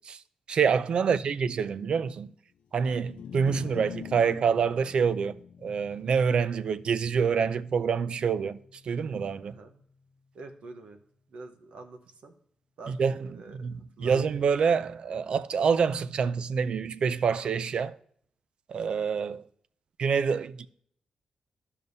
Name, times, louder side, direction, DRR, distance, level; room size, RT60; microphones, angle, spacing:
voice 1, 0.5-2.3 2.7-5.4 5.6-8.6 8.9-9.5 12.9-18.0 18.7-19.4 20.0-20.7, right 6 dB, 50° right, 0.3 m, -26 dB
sound 1, 2.8-9.2, left 8 dB, 75° left, 0.3 m, -45 dB
voice 2, 9.4-9.8 10.3-11.0 11.3-12.3 12.8-13.0 13.3-14.2, right 3 dB, 70° right, 0.9 m, -46 dB
14.0 x 5.4 x 2.6 m
wide cardioid pair, 180°, 2 cm